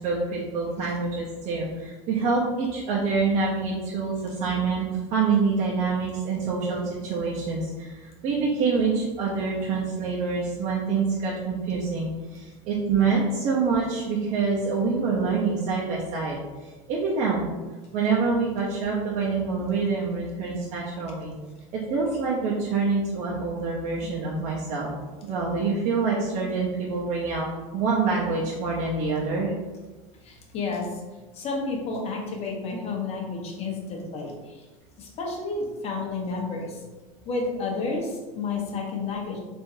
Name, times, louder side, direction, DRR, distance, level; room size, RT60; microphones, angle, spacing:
voice 1, 0.0-17.5 17.9-21.3 21.7-24.9 25.2-27.5 27.7-29.5, right 4 dB, 45° right, -5 dB, 0.7 m, -26 dB
voice 2, 30.2-31.0 31.3-34.6 35.0-36.8 37.2-39.4, left 3 dB, 40° left, 0 dB, 0.9 m, -31 dB
3.6 x 2.6 x 2.7 m, 1.2 s
supercardioid pair, 105°, 17 cm